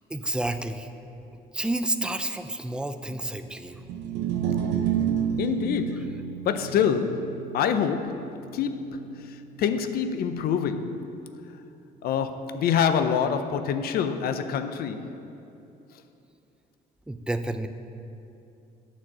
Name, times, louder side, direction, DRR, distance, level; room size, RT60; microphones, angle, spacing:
voice 1, 0.1-0.9 1.5-3.8 17.1-17.7, right 1 dB, 5° right, 0.4 m, -30 dB
sound 1, 3.8-10.1, right 8 dB, 80° right, 0.6 m, -31 dB
voice 2, 5.4-11.1 12.0-15.2, left 7 dB, 65° left, 0.5 m, -26 dB
9.0 x 4.4 x 7.3 m
cardioid pair, 110°, 17 cm